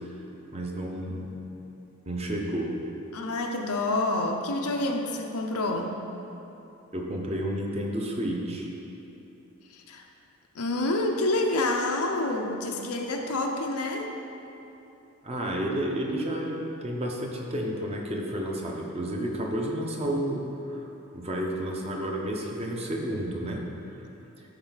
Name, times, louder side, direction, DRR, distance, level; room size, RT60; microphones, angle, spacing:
voice 1, 0.5-1.3 2.1-2.7 6.9-8.7 15.2-20.8 21.1-23.6, right 1 dB, 30° right, -1 dB, 0.8 m, -31 dB
voice 2, 3.1-6.0 9.7-10.0 10.5-14.1, left 2 dB, 90° left, 2 dB, 0.7 m, -28 dB
11.5 x 4.3 x 4.0 m, 2.9 s
head